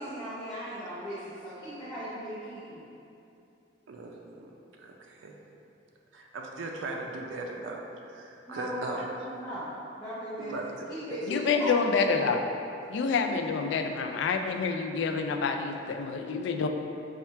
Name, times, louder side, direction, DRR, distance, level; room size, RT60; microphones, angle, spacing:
voice 1, 0.0-2.9 8.5-10.6 10.9-12.1, equal, 20° left, -12 dB, 0.7 m, -38 dB
voice 2, 3.9-4.5 4.8-5.4 6.1-9.1 10.4-11.2, right 2 dB, 85° right, 1 dB, 0.4 m, -38 dB
voice 3, 11.3-12.4 12.9-16.7, left 5 dB, 70° left, 6 dB, 0.3 m, -27 dB
4.3 x 2.4 x 4.4 m, 2.7 s
head